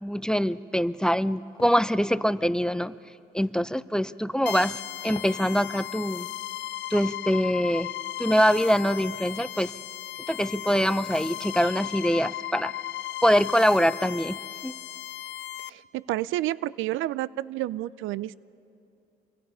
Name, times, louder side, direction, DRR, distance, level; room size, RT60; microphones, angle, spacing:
voice 1, 0.0-2.9 3.3-6.3 6.9-7.9 8.2-9.7 10.3-12.7 13.2-14.4 14.6-14.8, equal, 5° left, 17 dB, 0.4 m, -24 dB
sound 1, 1.6-1.8 3.4-3.6 5.0-5.4 5.8-5.9, left 4 dB, 25° left, 1.2 m, -43 dB
sound 2, 4.5-15.7, left 14 dB, 65° left, 0.6 m, -36 dB
voice 2, 15.7-18.4, right 15 dB, 90° right, 20 dB, 0.4 m, -30 dB
27.0 x 23.5 x 5.6 m, 2.6 s
cardioid pair, 90°, 20 cm